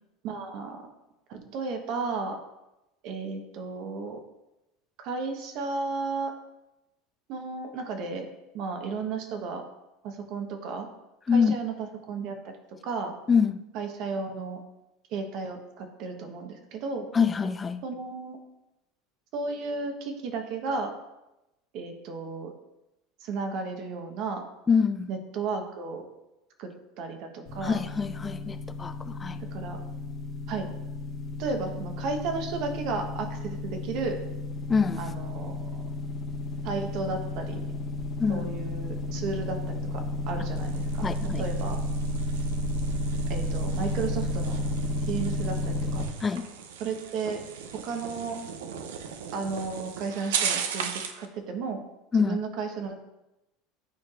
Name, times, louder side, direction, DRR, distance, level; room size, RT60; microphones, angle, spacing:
voice 1, 0.2-0.9 1.3-2.4 3.0-4.2 5.0-6.3 7.3-8.3 8.5-9.6 10.0-10.9 11.3-12.5 12.8-13.1 13.7-14.6 15.1-17.1 17.8-18.4 19.3-20.9 21.7-22.5 23.2-24.4 25.1-26.1 26.6-26.7 27.0-27.8 29.5-29.8 30.5-30.7 31.4-34.2 35.0-35.8 36.6-37.6 38.3-41.1 41.4-41.8 43.3-44.6 45.1-46.1 46.8-47.4 47.7-48.4 49.3-51.8 52.2-53.0, right 4 dB, 60° right, 5 dB, 1.0 m, -33 dB
voice 2, 11.3-11.6 13.3-13.6 17.1-17.8 24.7-25.1 27.6-29.4 34.7-35.0 38.2-38.5 41.0-41.4 46.2-46.5 52.1-52.4, left 5 dB, 20° left, 11 dB, 0.3 m, -25 dB
sound 1, 27.5-46.1, left 1 dB, 40° left, 1.3 m, -32 dB
sound 2, 40.6-51.3, right 7 dB, 85° right, 0.6 m, -37 dB
10.0 x 4.7 x 2.4 m, 0.95 s
supercardioid pair, 100°, 0 cm